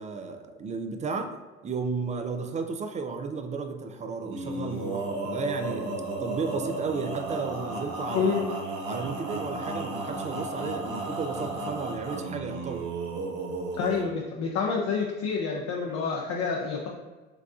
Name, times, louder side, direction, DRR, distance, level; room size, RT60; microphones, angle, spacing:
voice 1, 0.0-1.3 1.6-5.9 6.2-8.4 8.9-12.8, right 4 dB, 20° right, 7 dB, 0.4 m, -33 dB
Male singing, 4.2-14.1, right 2 dB, 50° right, 1.1 m, -34 dB
voice 2, 13.8-16.9, left 5 dB, 40° left, -1 dB, 0.7 m, -28 dB
4.7 x 3.5 x 2.4 m, 1.2 s
hypercardioid pair, 65°, 38 cm